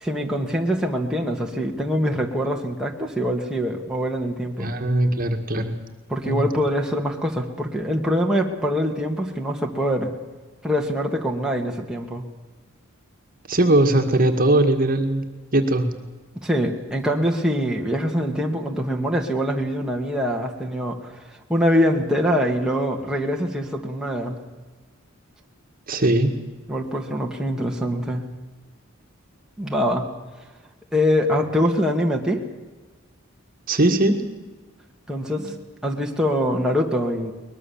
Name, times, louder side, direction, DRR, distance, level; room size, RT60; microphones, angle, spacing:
voice 1, 0.0-4.7 6.1-10.1 10.6-12.2 16.4-21.1 21.5-24.4 26.7-28.3 29.6-30.1 30.9-32.4 35.1-37.3, equal, 5° right, -1 dB, 2.1 m, -24 dB
voice 2, 4.6-5.7 6.3-6.4 13.5-15.2 15.5-15.9 25.9-26.3 33.7-34.2, right 1 dB, 40° right, 5 dB, 2.0 m, -19 dB
22.5 x 21.0 x 7.3 m, 1.3 s
head